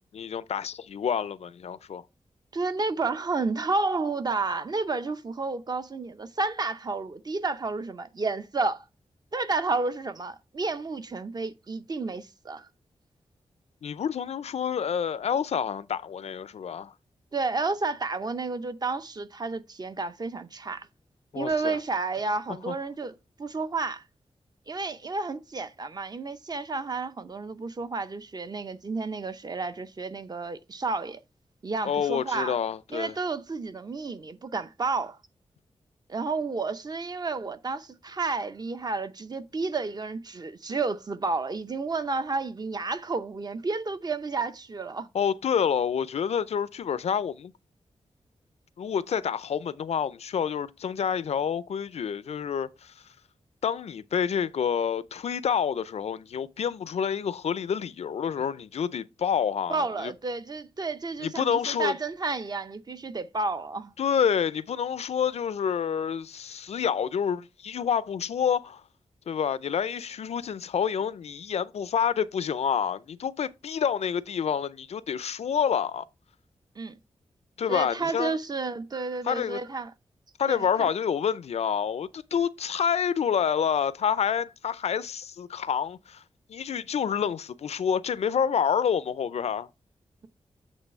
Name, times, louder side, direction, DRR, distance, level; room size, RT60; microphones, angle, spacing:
voice 1, 0.0-2.0 13.8-16.9 21.3-21.8 22.7-22.8 31.8-33.1 45.1-47.5 48.8-52.9 53.6-60.1 61.2-61.9 64.0-68.8 69.3-76.1 77.6-78.4 79.2-79.6 80.4-86.2 86.5-89.7, left 7 dB, 75° left, 0.5 m, -28 dB
voice 2, 2.5-8.8 9.3-12.7 17.3-20.9 21.3-24.0 24.7-31.2 31.6-32.6 32.9-35.2 36.1-45.1 59.7-63.9 76.8-77.0 77.7-79.9 80.5-80.9, right 3 dB, 35° right, 0.7 m, -31 dB
8.2 x 3.1 x 5.3 m
wide cardioid pair, 110°, 11 cm